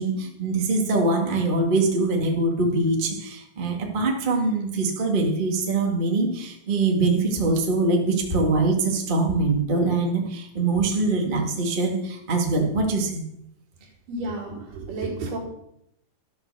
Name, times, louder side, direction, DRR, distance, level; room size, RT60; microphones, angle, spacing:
voice 1, 0.0-13.2, right 3 dB, 40° right, 1 dB, 0.7 m, -23 dB
voice 2, 13.8-15.4, right 2 dB, 65° right, 0 dB, 3.8 m, -32 dB
11.5 x 6.5 x 6.7 m, 0.77 s
omnidirectional pair, 4.2 m